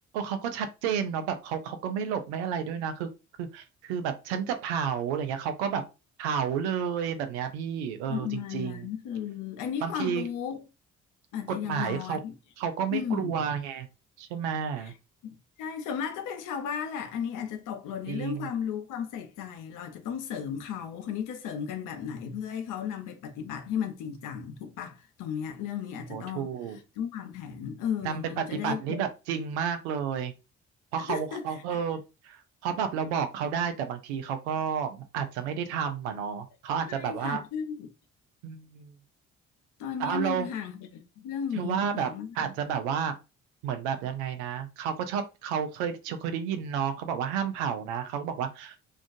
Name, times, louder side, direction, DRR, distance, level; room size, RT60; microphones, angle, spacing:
voice 1, 0.1-3.1 3.4-5.8 6.2-8.9 9.8-10.3 11.5-12.2 12.6-13.9 14.2-14.9 18.1-18.5 26.1-26.8 28.0-30.3 30.9-32.0 32.2-37.4 38.4-38.9 40.0-40.5 41.6-43.1 43.6-48.8, right 7 dB, 80° right, 0.5 m, -31 dB
voice 2, 8.1-10.6 11.3-12.3 12.9-13.5 14.8-14.9 15.2-29.0 31.1-31.8 36.9-37.9 39.8-42.4, left 8 dB, 65° left, 0.7 m, -35 dB
2.4 x 2.3 x 2.5 m
hypercardioid pair, 45°, 33 cm